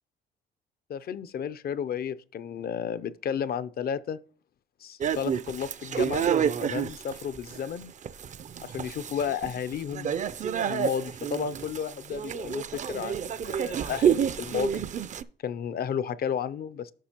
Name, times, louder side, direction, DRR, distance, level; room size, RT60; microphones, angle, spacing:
voice 1, 0.9-4.2 4.8-6.3 6.6-7.9 8.6-10.1 10.7-14.9 15.4-16.9, left 8 dB, 50° left, 0.4 m, -33 dB
sound 1, 5.0-15.2, right 8 dB, 40° right, 0.4 m, -29 dB
10.0 x 6.1 x 2.9 m
cardioid pair, 90°, 20 cm